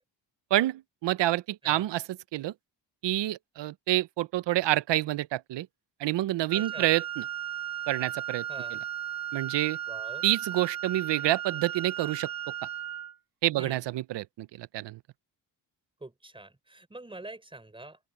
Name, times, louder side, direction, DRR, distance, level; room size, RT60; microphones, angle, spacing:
voice 1, 0.5-2.5 3.0-5.7 6.0-7.2 7.9-8.4 8.7-8.8 9.3-9.8 10.2-12.3 13.4-15.0, right 15 dB, 75° right, 0.7 m, -28 dB
voice 2, 6.5-6.9 8.5-8.8 9.9-10.3 13.6-13.8 16.0-18.0, right 2 dB, 10° right, 5.3 m, -45 dB
Wind instrument woodwind instrument, 6.5-13.2, right 11 dB, 50° right, 2.5 m, -36 dB
open air
cardioid pair, 140°, 43 cm